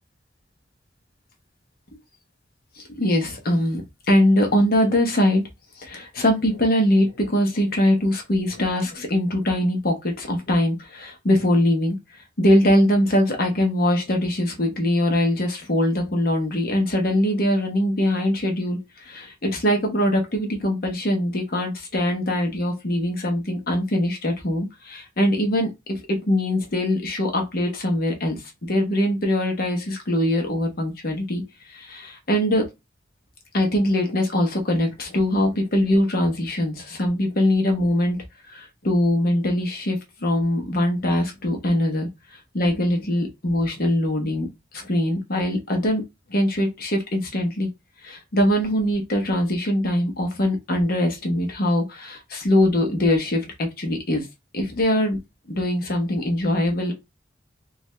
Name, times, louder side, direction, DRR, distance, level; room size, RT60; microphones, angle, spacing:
voice 1, 2.8-5.4 5.8-12.0 12.4-28.4 28.7-31.4 31.7-32.6 33.5-42.1 42.5-44.5 44.7-46.0 46.3-47.7 48.0-54.3 54.5-55.2 55.5-56.9, left 1 dB, 55° left, 0.9 m, -22 dB
4.6 x 2.4 x 2.2 m
head